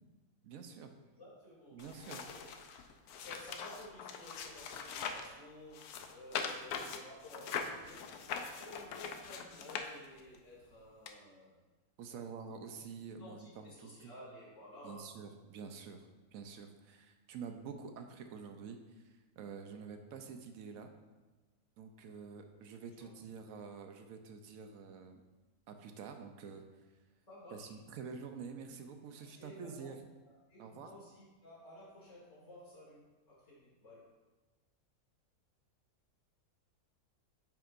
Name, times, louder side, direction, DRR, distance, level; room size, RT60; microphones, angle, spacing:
voice 1, 0.4-0.9 1.7-2.2 12.0-14.1 14.8-16.0 16.3-18.8 19.0-20.9 21.8-25.2 25.7-26.6 27.5-30.0 30.6-30.9, right 6 dB, 70° right, 6 dB, 1.0 m, -48 dB
voice 2, 1.1-2.5 3.2-8.1 8.5-11.5 12.1-12.3 13.1-15.2 23.0-23.1 27.3-27.7 29.1-29.9 30.5-34.1, left 1 dB, 50° left, -7 dB, 2.8 m, -54 dB
sound 1, 1.8-5.3 5.7-10.4 11.1-11.2, left 6 dB, 80° left, 1.1 m, -42 dB
8.8 x 5.7 x 2.5 m, 1.2 s
omnidirectional pair, 1.6 m